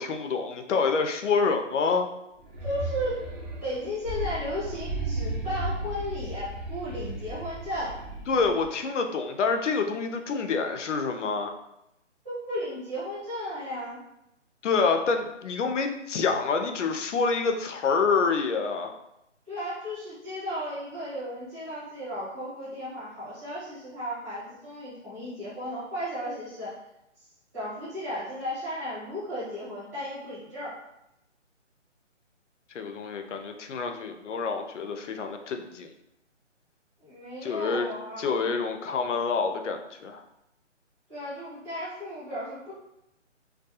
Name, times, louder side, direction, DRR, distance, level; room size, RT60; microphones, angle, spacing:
voice 1, 0.0-2.1 8.3-11.5 14.6-18.9 32.7-35.9 37.4-37.9 38.2-40.2, left 4 dB, 75° left, 5 dB, 0.5 m, -27 dB
sound 1, 2.4-8.7, right 1 dB, 35° right, 0.5 m, -35 dB
voice 2, 2.6-3.2 3.6-8.0 12.2-14.0 19.5-26.8 27.2-27.3 27.5-30.8 37.0-38.5 41.1-42.7, equal, 15° right, -13 dB, 0.9 m, -35 dB
2.3 x 2.3 x 2.7 m, 0.86 s
hypercardioid pair, 170°, 37 cm